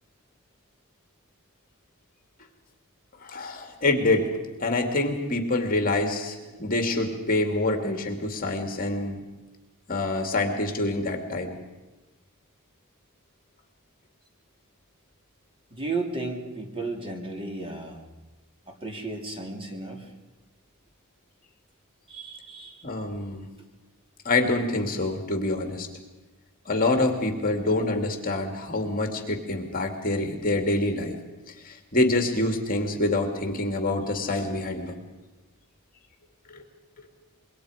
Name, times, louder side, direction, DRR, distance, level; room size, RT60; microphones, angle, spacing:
voice 1, 3.2-4.3 4.6-9.2 9.9-11.5 22.8-23.5 24.2-25.9 26.7-31.2 31.6-35.0 36.5-36.6 37.0-37.1, left 2 dB, 40° left, 4 dB, 2.5 m, -26 dB
voice 2, 15.7-18.0 18.7-20.1 22.1-22.9, right 3 dB, 25° right, 2 dB, 2.8 m, -34 dB
26.5 x 22.5 x 5.0 m, 1.1 s
head